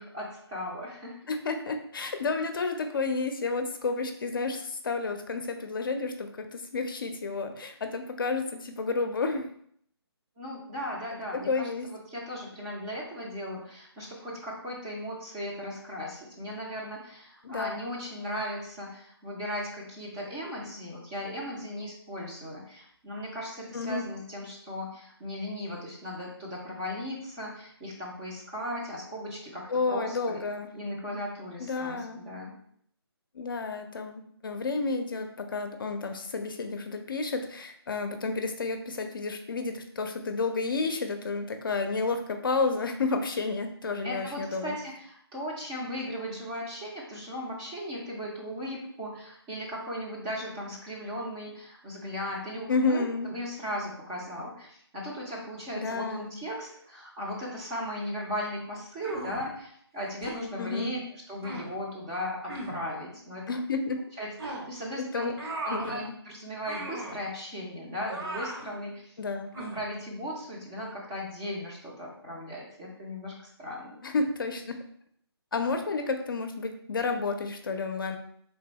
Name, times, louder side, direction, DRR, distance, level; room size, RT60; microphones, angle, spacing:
voice 1, 0.0-1.2 10.4-30.4 30.7-32.5 44.0-61.0 61.3-63.5 64.2-69.1 69.5-74.0, equal, 10° right, -4 dB, 0.5 m, -37 dB
voice 2, 1.3-9.5 11.5-11.9 17.4-17.7 23.7-24.1 29.7-30.7 31.6-32.2 33.3-44.8 52.7-53.3 55.7-56.3 60.6-60.9 63.5-64.0 65.1-66.1 69.2-69.5 74.0-74.8 75.5-78.2, left 4 dB, 55° left, 6 dB, 0.5 m, -31 dB
sound 1, 59.0-59.5 60.2-60.4 61.4-61.7 62.5-62.8 64.4-64.7 65.4-66.0 66.7-67.2 68.1-68.7 69.5-69.8, right 1 dB, 65° right, 1.2 m, -37 dB
3.4 x 2.6 x 4.0 m, 0.66 s
hypercardioid pair, 160°, 14 cm